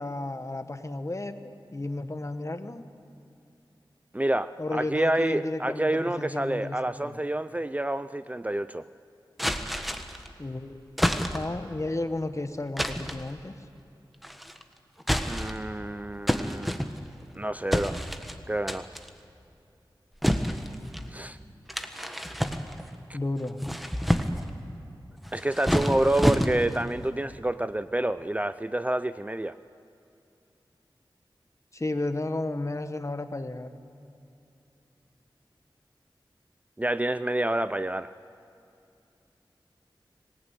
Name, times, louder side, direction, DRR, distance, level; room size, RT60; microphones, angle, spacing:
voice 1, 0.0-2.8 4.6-7.2 10.4-10.8 11.2-13.5 23.1-23.6 31.7-33.7, left 2 dB, 35° left, 9 dB, 1.4 m, -33 dB
voice 2, 4.1-8.9 15.2-16.8 17.3-18.0 18.5-18.9 21.1-21.4 23.1-23.2 25.3-29.6 36.8-38.1, right 1 dB, 15° right, 13 dB, 0.5 m, -28 dB
sound 1, 9.4-10.3 11.0-11.6 12.8-13.3 14.2-14.6 15.0-15.7 16.3-17.2 17.7-18.4 18.7-19.1 20.2-21.1 21.7-23.0 23.4-24.5 25.2-26.8, equal, ahead, 1.5 m, -28 dB
25.5 x 18.5 x 9.1 m, 2.7 s
wide cardioid pair, 60°, 9 cm